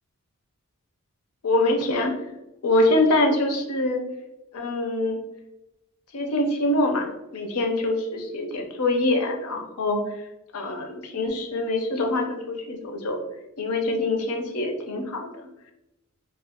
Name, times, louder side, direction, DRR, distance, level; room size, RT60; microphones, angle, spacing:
voice 1, 1.4-2.1 2.6-4.0 4.5-5.2 6.1-10.1 10.5-13.2 13.6-15.3, left 2 dB, 85° left, 3 dB, 0.6 m, -24 dB
2.4 x 2.3 x 3.5 m, 0.96 s
head